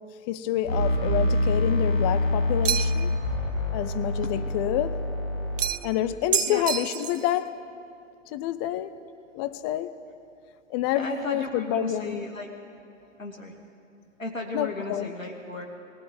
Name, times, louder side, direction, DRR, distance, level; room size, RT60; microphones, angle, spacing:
voice 1, 0.3-3.1 3.7-5.0 5.8-7.5 8.3-8.9 9.3-10.0 10.7-12.2 14.5-15.1, left 12 dB, 20° left, 0.5 m, -28 dB
sound 1, 0.6-5.7, left 1 dB, 55° left, 5.9 m, -26 dB
sound 2, 2.6-3.1 5.6-6.0 6.3-7.3, right 10 dB, 70° right, 0.5 m, -28 dB
voice 2, 10.9-12.5 13.2-13.5 14.2-15.7, left 2 dB, 85° left, 2.5 m, -35 dB
21.0 x 17.0 x 9.5 m
figure-of-eight pair, 110°, 39 cm